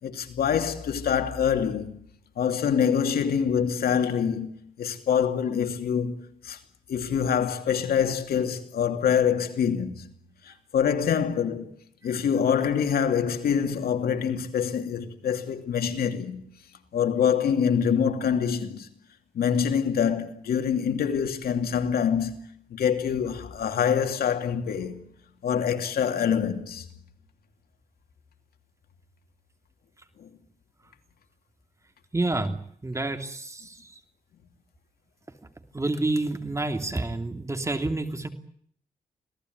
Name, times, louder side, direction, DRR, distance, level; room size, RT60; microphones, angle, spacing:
voice 1, 0.0-1.9 2.4-4.5 4.8-6.6 6.9-10.1 10.5-11.7 12.0-16.4 16.9-18.9 19.3-22.4 22.7-25.0 25.4-26.9 30.2-30.3, left 7 dB, 80° left, 2.8 m, -25 dB
voice 2, 32.1-32.6 32.8-33.8 35.7-38.3, right 2 dB, 20° right, 3.0 m, -28 dB
26.5 x 18.0 x 9.5 m
cardioid pair, 110°, 15 cm